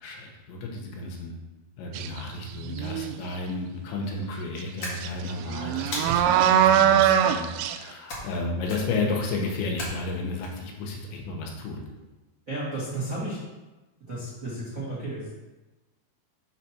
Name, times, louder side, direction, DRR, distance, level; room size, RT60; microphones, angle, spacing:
voice 1, 0.0-1.3 1.8-11.9, left 3 dB, 75° left, 0 dB, 3.1 m, -32 dB
sound 1, 1.9-2.2 2.7-3.3 4.6-4.7 5.0-7.8, right 10 dB, 85° right, 2.9 m, -22 dB
sound 2, 4.8-5.4 5.9-6.5 8.1-8.4 8.7-9.1 9.8-10.5, left 1 dB, 55° left, 1.6 m, -36 dB
voice 2, 12.5-13.4 14.1-15.3, right 2 dB, 65° right, -7 dB, 0.8 m, -33 dB
7.1 x 4.1 x 6.0 m, 1.1 s
omnidirectional pair, 5.5 m